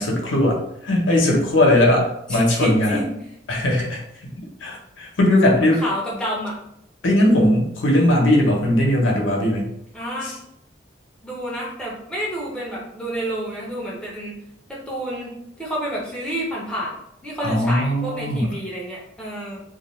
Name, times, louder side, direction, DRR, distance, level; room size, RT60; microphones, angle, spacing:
voice 1, 0.0-3.0 3.5-4.3 4.6-5.8 7.0-9.7 10.2-10.4 17.4-18.6, left 1 dB, 90° left, -1 dB, 0.7 m, -19 dB
voice 2, 2.5-3.1 5.6-6.6 9.9-10.3 11.2-14.3 14.7-17.0 17.2-19.6, equal, 5° left, -5 dB, 0.5 m, -29 dB
2.3 x 2.2 x 3.0 m, 0.76 s
head